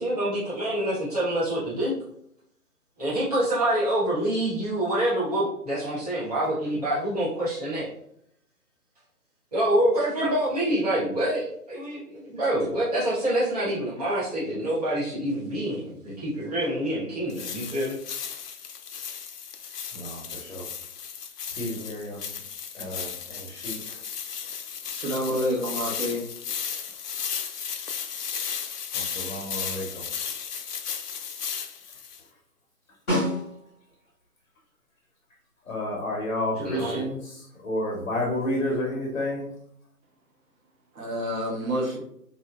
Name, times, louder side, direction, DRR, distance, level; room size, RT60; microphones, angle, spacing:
voice 1, 0.0-1.9 3.0-7.9 9.5-18.0 36.6-37.0, right 1 dB, 25° right, -11 dB, 0.8 m, -26 dB
sound 1, 17.3-32.2, left 7 dB, 90° left, 0.6 m, -35 dB
voice 2, 19.9-20.7 21.5-22.3 22.7-24.0 28.9-30.1 35.7-39.5, left 1 dB, 50° left, -2 dB, 0.8 m, -31 dB
voice 3, 24.9-26.3 40.9-42.0, equal, 60° right, -2 dB, 1.2 m, -28 dB
Snare drum, 33.1-34.0 38.4-38.5, equal, 10° left, 1.3 m, -28 dB
3.4 x 2.7 x 2.3 m, 0.72 s
hypercardioid pair, 170°, 46 cm